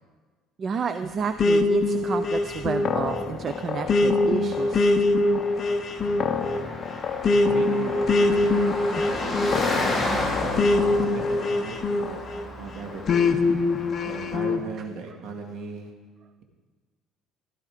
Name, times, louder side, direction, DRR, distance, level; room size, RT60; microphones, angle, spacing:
voice 1, 0.6-5.0 8.9-9.6 10.4-10.5, right 5 dB, 35° right, 9 dB, 0.5 m, -31 dB
Car passing by, 1.2-14.4, left 2 dB, 10° left, 2.3 m, -34 dB
sound 1, 1.4-12.5 13.1-14.6, left 2 dB, 35° left, 0.8 m, -23 dB
voice 2, 5.2-5.8 7.3-8.7 9.0-10.7 11.1-12.2 12.6-13.5 14.0-15.9, right 4 dB, 60° right, 2 dB, 2.2 m, -38 dB
15.5 x 13.0 x 5.0 m, 1.4 s
cardioid pair, 140°, 0 cm